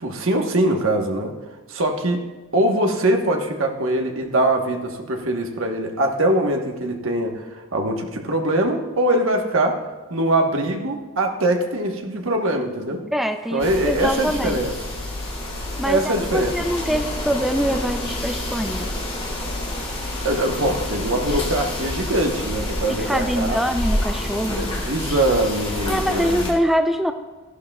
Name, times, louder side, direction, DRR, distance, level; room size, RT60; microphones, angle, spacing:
voice 1, 0.0-1.3 1.7-2.2 2.5-9.8 10.1-13.0 13.5-14.7 15.8-16.5 20.2-23.6 24.5-26.5, right 1 dB, 65° right, 3 dB, 1.2 m, -22 dB
voice 2, 13.1-14.6 15.8-18.9 22.9-24.7 25.9-27.1, equal, ahead, 6 dB, 0.3 m, -24 dB
sound 1, 13.6-26.5, left 1 dB, 25° left, 1.8 m, -28 dB
14.0 x 11.5 x 2.3 m, 1.3 s
head